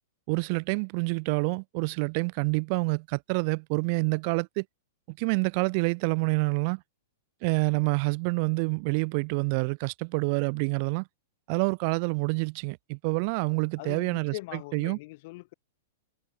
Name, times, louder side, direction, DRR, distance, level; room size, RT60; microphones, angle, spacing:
voice 1, 0.3-4.6 5.1-6.8 7.4-11.1 11.5-14.3 14.7-15.0, right 34 dB, 50° right, 0.8 m, -27 dB
voice 2, 13.8-15.5, left 22 dB, 55° left, 4.4 m, -41 dB
hypercardioid pair, 130°, 0 cm